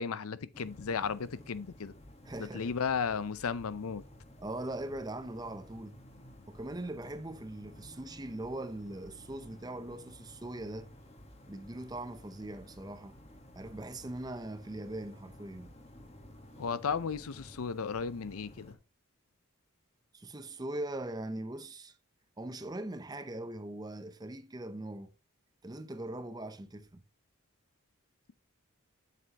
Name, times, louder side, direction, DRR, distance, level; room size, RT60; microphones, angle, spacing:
voice 1, 0.0-1.9 2.4-4.0 16.6-18.8, left 6 dB, 85° left, 0.6 m, -34 dB
sound 1, 0.5-18.7, equal, 30° left, 1.4 m, -54 dB
voice 2, 2.3-2.7 4.4-6.0 6.5-10.9 11.5-13.2 13.5-15.7 20.1-22.0 22.4-25.1 25.6-27.0, right 1 dB, 20° right, 0.6 m, -41 dB
7.8 x 7.6 x 2.8 m
head